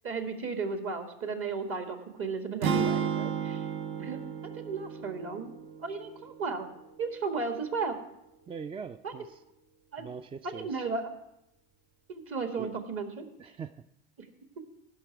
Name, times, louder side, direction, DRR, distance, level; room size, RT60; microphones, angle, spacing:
voice 1, 0.0-3.6 4.0-5.5 5.8-6.7 7.0-7.9 9.0-9.1 9.9-10.1 10.4-11.1 12.1-13.2 14.2-14.3, right 4 dB, 45° right, 6 dB, 1.7 m, -34 dB
sound 1, 2.6-6.8, right 7 dB, 65° right, 0.8 m, -33 dB
voice 2, 8.5-9.4 10.0-10.8 12.6-12.7 13.4-13.7, right 6 dB, 20° right, 11 dB, 0.3 m, -42 dB
16.0 x 5.9 x 4.7 m, 0.85 s
hypercardioid pair, 80°, 30 cm